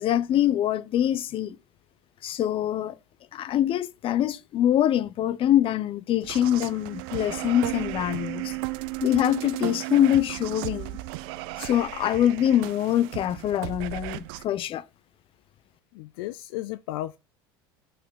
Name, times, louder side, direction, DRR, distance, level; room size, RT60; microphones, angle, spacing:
voice 1, 0.0-1.6 2.2-3.0 3.3-8.5 9.0-11.0 11.6-14.8, left 11 dB, 45° left, 0.7 m, -24 dB
sound 1, 6.2-14.4, right 19 dB, 70° right, 0.6 m, -35 dB
voice 2, 15.9-17.2, left 15 dB, 70° left, 0.4 m, -34 dB
6.6 x 5.1 x 3.9 m
hypercardioid pair, 80°, 13 cm